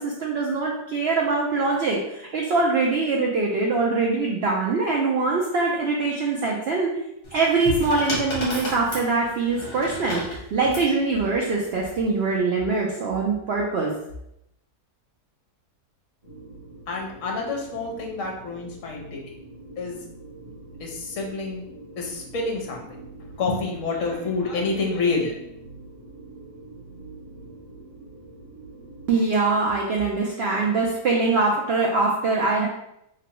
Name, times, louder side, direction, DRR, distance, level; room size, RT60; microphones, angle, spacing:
voice 1, 0.0-6.9 7.3-13.9 29.1-32.7, right 3 dB, 80° right, -1 dB, 0.5 m, -23 dB
sound 1, 7.2-10.9 12.0-12.3, left 1 dB, 35° left, 1.4 m, -32 dB
sound 2, 16.2-29.1, right 2 dB, 40° right, 1.5 m, -44 dB
voice 2, 16.9-19.2 19.8-20.0 20.8-21.6 22.0-23.0 23.4-25.3, left 3 dB, 60° left, 0 dB, 1.1 m, -28 dB
3.4 x 3.0 x 3.0 m, 0.81 s
omnidirectional pair, 1.7 m